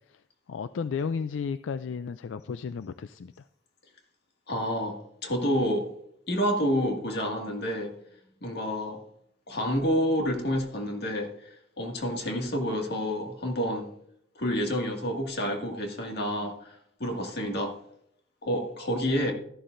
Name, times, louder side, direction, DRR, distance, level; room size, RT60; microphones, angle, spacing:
voice 1, 0.5-3.3, left 6 dB, 85° left, 0.4 m, -33 dB
voice 2, 4.5-5.9 6.3-7.9 8.4-9.0 9.5-13.9 14.4-17.8 18.4-19.3, equal, 60° left, 2.0 m, -29 dB
13.5 x 11.0 x 2.6 m
head